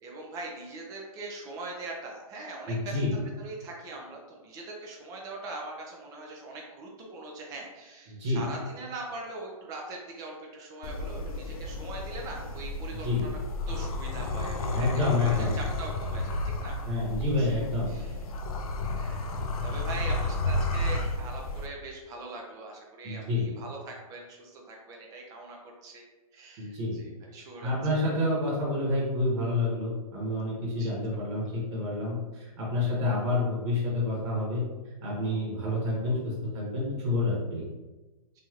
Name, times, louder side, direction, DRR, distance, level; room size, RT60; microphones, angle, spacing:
voice 1, 0.0-13.3 13.7-14.9 15.2-16.8 17.4-18.2 18.8-26.0 26.3-27.7 30.8-30.9 31.4-31.5 32.8-32.9, right 2 dB, 20° right, -1 dB, 0.5 m, -42 dB
voice 2, 2.7-3.1 8.1-8.4 13.0-13.3 14.7-15.5 16.8-17.9 23.0-23.5 26.6-27.0 27.6-34.6 35.0-37.6, left 2 dB, 50° right, -5 dB, 1.2 m, -28 dB
sound 1, 10.8-21.7, left 2 dB, 75° left, 0.4 m, -32 dB
3.0 x 2.7 x 2.4 m, 1.2 s
hypercardioid pair, 140°, 19 cm